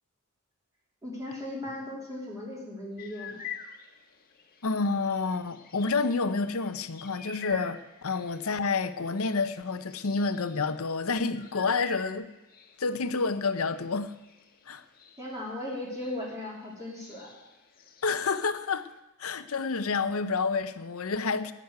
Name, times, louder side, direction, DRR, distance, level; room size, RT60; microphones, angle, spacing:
voice 1, 1.0-3.4 15.2-17.3, left 1 dB, 15° right, 3.1 m, -37 dB
sound 1, 3.0-19.0, left 6 dB, 45° left, 1.2 m, -48 dB
voice 2, 4.6-12.3 12.8-14.1 14.7-14.8 18.0-18.9 19.2-21.5, left 4 dB, 75° left, 0.8 m, -29 dB
17.0 x 6.4 x 9.6 m
head